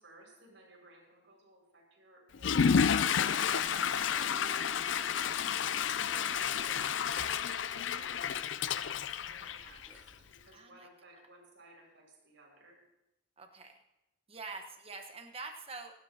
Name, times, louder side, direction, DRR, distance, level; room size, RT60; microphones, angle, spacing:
voice 1, 0.0-3.4 3.7-5.2 6.3-8.5 9.3-12.8, right 1 dB, 75° right, -1 dB, 5.9 m, -58 dB
Water / Toilet flush, 2.3-10.1, left 7 dB, 85° left, 0.5 m, -31 dB
sound 1, 2.4-8.2, left 3 dB, 20° left, 1.6 m, -56 dB
Chewing mastication, 3.1-10.4, right 1 dB, 10° right, 4.5 m, -57 dB
voice 2, 3.7-4.1 10.5-10.9 13.4-13.8 14.3-15.9, right 3 dB, 30° right, 4 dB, 1.4 m, -46 dB
26.5 x 12.5 x 2.9 m, 0.91 s
head